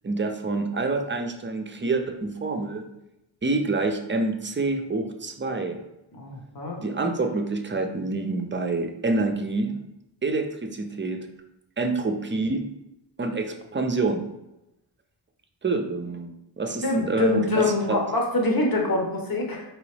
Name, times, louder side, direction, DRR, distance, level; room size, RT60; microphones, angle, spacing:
voice 1, 0.0-2.9 3.4-5.8 6.8-9.8 10.2-11.3 11.8-12.6 13.2-14.2 15.6-16.3 16.6-18.0, right 3 dB, 25° right, 5 dB, 0.5 m, -27 dB
voice 2, 6.1-6.8 16.8-19.6, left 2 dB, 55° left, 0 dB, 1.0 m, -24 dB
5.0 x 3.1 x 3.3 m, 0.88 s
wide cardioid pair, 85°, 43 cm